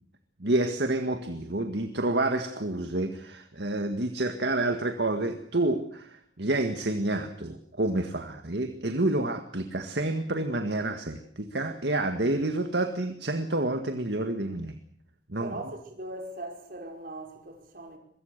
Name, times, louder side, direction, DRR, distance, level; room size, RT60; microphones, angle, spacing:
voice 1, 0.4-14.7 15.3-15.5, right 2 dB, 70° right, 1.9 m, -29 dB
voice 2, 15.4-18.0, right 1 dB, 55° right, 5.1 m, -40 dB
24.0 x 22.5 x 6.8 m
head